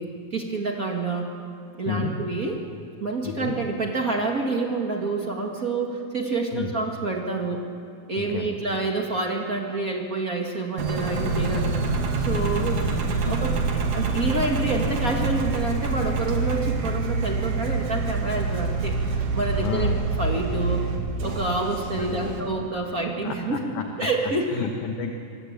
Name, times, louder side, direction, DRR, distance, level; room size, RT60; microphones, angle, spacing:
voice 1, 0.0-1.3 1.8-2.6 3.0-7.6 8.1-11.8 12.2-12.8 13.2-20.8 21.2-23.7 24.0-24.5, right 3 dB, 75° right, 0 dB, 0.7 m, -28 dB
voice 2, 1.9-2.2 3.2-3.5 6.5-6.7 8.1-8.5 11.4-11.6 12.6-12.9 13.3-13.4 19.6-20.0 22.0-22.5 23.2-23.9 24.5-25.1, left 7 dB, 60° left, 4 dB, 2.3 m, -31 dB
Engine, 10.8-22.4, right 4 dB, 55° right, 3.4 m, -26 dB
26.0 x 21.0 x 8.9 m, 2.5 s
omnidirectional pair, 4.8 m